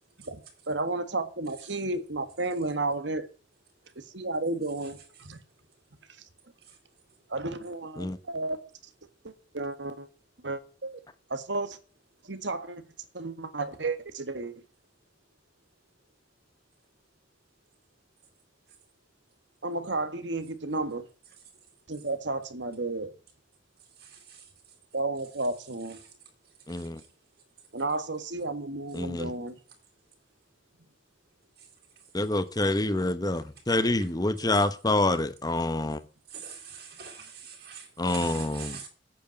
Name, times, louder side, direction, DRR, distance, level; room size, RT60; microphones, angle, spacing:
voice 1, 0.7-3.3 3.9-5.4 7.3-8.6 9.2-10.1 10.4-10.9 11.3-11.8 12.2-12.8 13.1-14.5 19.6-21.1 21.9-23.1 24.9-26.0 27.7-29.5, right 2 dB, 80° right, 1.7 m, -32 dB
voice 2, 24.0-24.4 36.3-38.9, right 7 dB, 55° right, 3.6 m, -43 dB
voice 3, 26.7-27.0 28.9-29.3 32.1-36.0 38.0-38.8, left 2 dB, 20° left, 0.9 m, -27 dB
9.0 x 8.1 x 8.8 m
head